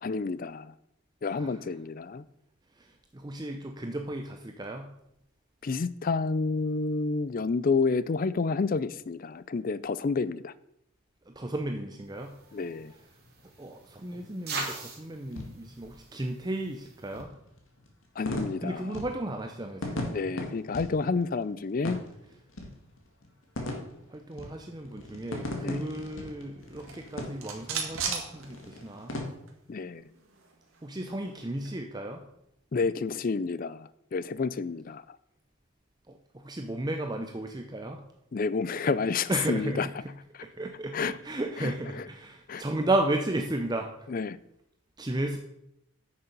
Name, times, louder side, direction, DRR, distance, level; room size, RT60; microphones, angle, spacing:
voice 1, 0.0-0.7 1.2-2.2 5.6-10.5 12.5-12.9 18.2-18.8 20.1-22.0 25.6-25.9 29.7-30.1 32.7-35.2 38.3-39.9 40.9-41.1 41.6-41.7 42.5-42.6 44.1-44.4, left 4 dB, 40° left, 17 dB, 0.4 m, -29 dB
voice 2, 1.2-1.6 2.7-4.9 11.3-12.3 13.6-17.3 18.6-20.1 24.1-29.2 30.8-32.2 36.1-38.0 39.3-40.1 40.6-44.1 45.0-45.4, right 1 dB, 20° right, 4 dB, 0.6 m, -34 dB
sound 1, 11.9-29.2, left 1 dB, 70° left, 1.9 m, -40 dB
sound 2, 12.1-17.2, right 3 dB, 50° right, 2.9 m, -42 dB
sound 3, 26.7-29.2 29.5-29.6 29.9-31.8, right 6 dB, 75° right, 2.0 m, -37 dB
9.7 x 6.8 x 5.3 m, 0.81 s
head